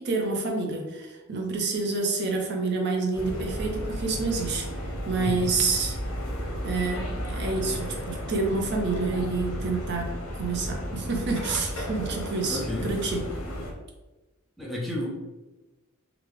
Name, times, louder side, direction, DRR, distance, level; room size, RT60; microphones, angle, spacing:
voice 1, 0.0-4.7 5.1-6.0 6.6-13.2, right 3 dB, 50° right, 1 dB, 0.5 m, -28 dB
sound 1, 3.1-13.7, equal, 70° left, 0.8 m, -33 dB
voice 2, 5.1-5.5 12.5-12.9 14.6-15.1, left 1 dB, ahead, -5 dB, 0.6 m, -31 dB
3.7 x 2.3 x 3.1 m, 1.1 s
head